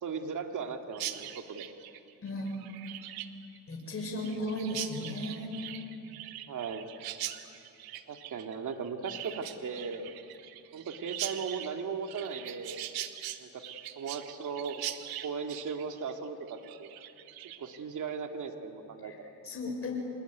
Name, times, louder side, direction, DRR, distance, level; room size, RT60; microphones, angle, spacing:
voice 1, 0.0-1.6 6.5-6.9 8.1-10.1 10.7-12.8 13.4-13.6 14.0-16.9 17.6-19.1, right 5 dB, 55° right, 5 dB, 2.5 m, -37 dB
Chirp tweet, 0.9-17.8, right 13 dB, 85° right, 1.4 m, -42 dB
voice 2, 2.2-2.6 3.7-5.5 19.0-19.2 19.4-19.9, left 1 dB, 40° left, 0 dB, 6.5 m, -35 dB
26.0 x 20.0 x 9.6 m, 2.7 s
cardioid pair, 80°, 36 cm